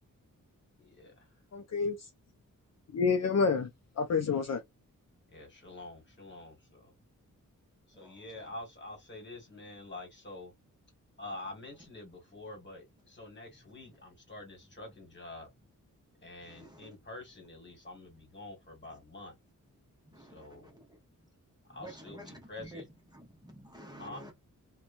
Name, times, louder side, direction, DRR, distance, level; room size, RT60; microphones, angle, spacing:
voice 1, 1.5-2.1 2.9-3.7 4.0-4.6, left 5 dB, 55° left, 0.5 m, -28 dB
voice 2, 5.3-6.5 8.0-10.5 11.2-12.8 13.1-15.5 16.2-19.3 20.3-20.6 21.8-22.2 22.5-22.7 24.0-24.2, left 2 dB, 35° left, 1.5 m, -46 dB
voice 3, 7.9-8.5 11.3-11.4 16.4-16.9 18.9-19.0 20.1-21.0 21.8-22.8 23.4-24.3, right 1 dB, 10° right, 0.7 m, -50 dB
2.8 x 2.2 x 2.4 m
wide cardioid pair, 135°, 33 cm